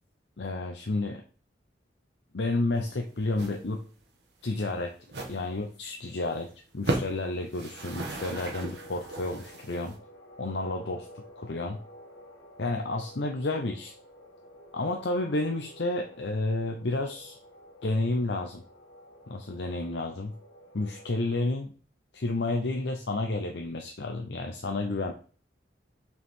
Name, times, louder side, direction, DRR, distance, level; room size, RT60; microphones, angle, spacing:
voice 1, 0.4-1.2 2.3-3.8 4.4-5.0 5.3-9.9 10.4-11.1 11.4-11.8 12.6-13.9 14.7-17.4 17.8-18.6 19.3-20.3 20.7-21.7 22.1-25.1, left 2 dB, 65° left, 3 dB, 0.7 m, -31 dB
sound 1, 2.7-3.0 3.3-3.6 3.8-4.0 4.5-4.6 5.0-5.4 5.8-5.9 6.2-6.4 6.7-7.2 7.5-10.0, right 2 dB, 65° right, 1.4 m, -35 dB
sound 2, 8.4-21.4, equal, 85° left, 1.5 m, -52 dB
6.6 x 4.6 x 3.7 m, 0.40 s
head